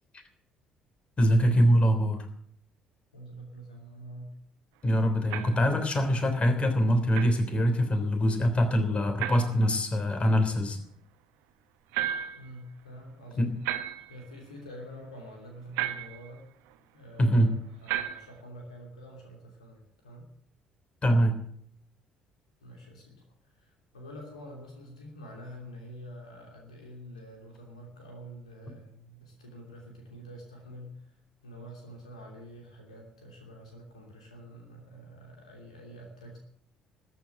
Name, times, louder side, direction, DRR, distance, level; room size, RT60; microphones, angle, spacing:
voice 1, 1.2-2.3 4.8-10.8 13.4-13.5 17.2-17.5 21.0-21.3, equal, 35° left, 7 dB, 3.3 m, -24 dB
voice 2, 3.1-4.3 12.4-13.5 14.1-16.4 16.9-20.3 22.6-23.2 23.5-30.9 31.4-36.4, equal, 85° left, 2 dB, 2.9 m, -47 dB
sound 1, 5.3-5.7 7.1-7.4 9.2-9.6 11.9-12.5 13.6-14.2 15.8-16.3 17.9-18.4, right 12 dB, 70° right, 1.0 m, -33 dB
13.5 x 9.4 x 8.8 m, 0.63 s
hypercardioid pair, 50°, 4 cm